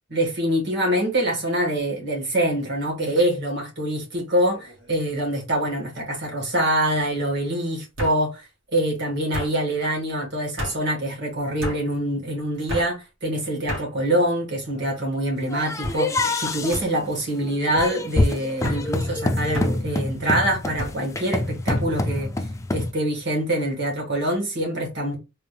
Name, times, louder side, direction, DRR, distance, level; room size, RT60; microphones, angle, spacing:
voice 1, 0.1-8.5 8.7-25.2, right 1 dB, 60° right, 1.8 m, -25 dB
sound 1, 4.5-4.9 5.3-5.8 6.9-7.0 8.0-8.2 9.3-9.5 10.6-10.8 11.6-11.8 12.7-12.9 13.7-13.9 14.6-15.0 15.8-16.0 16.7-16.9 17.8-17.9 18.6-18.8 19.5-19.8 20.8-21.0 21.7-21.9, equal, 85° right, 1.9 m, -31 dB
sound 2, 15.5-22.9, left 2 dB, 15° left, 0.4 m, -26 dB
4.0 x 2.5 x 3.2 m
head